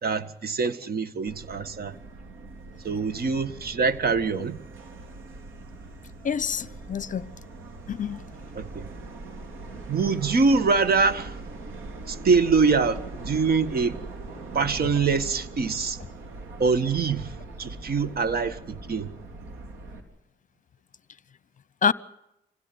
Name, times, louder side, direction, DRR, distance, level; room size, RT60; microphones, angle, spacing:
voice 1, 0.0-1.9 2.8-4.6 8.5-8.9 9.9-11.3 12.1-14.0 14.5-16.0 16.6-17.3 17.6-19.1, right 4 dB, 50° right, 1.7 m, -24 dB
Subway metro underground, 1.3-20.0, right 2 dB, 90° right, 3.7 m, -41 dB
voice 2, 6.2-7.3 7.9-8.2 21.8-21.9, left 7 dB, 40° left, 0.8 m, -26 dB
26.5 x 16.5 x 9.6 m
cardioid pair, 90°, 20 cm